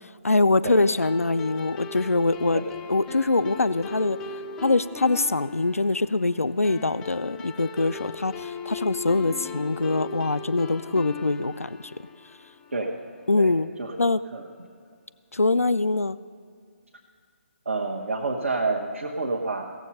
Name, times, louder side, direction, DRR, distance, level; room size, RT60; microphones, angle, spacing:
voice 1, 0.2-2.6 2.9-4.2 4.6-11.9 13.3-13.7 14.0-14.2 15.3-16.2, left 3 dB, 85° left, 15 dB, 0.3 m, -23 dB
sound 1, 0.6-13.4, left 5 dB, 10° left, 0.3 m, -38 dB
voice 2, 17.6-19.7, right 3 dB, 70° right, -1 dB, 1.1 m, -28 dB
16.5 x 7.6 x 5.4 m, 2.1 s
figure-of-eight pair, 145°, 7 cm